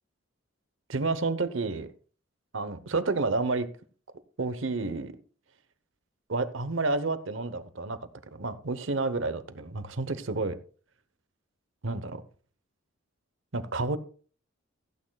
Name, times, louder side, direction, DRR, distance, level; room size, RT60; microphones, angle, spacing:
voice 1, 0.9-1.9 2.5-3.7 4.4-5.1 6.3-8.0 8.3-10.6 11.8-12.2 13.5-14.0, right 3 dB, 75° right, 12 dB, 0.9 m, -30 dB
16.0 x 8.8 x 2.3 m, 0.42 s
head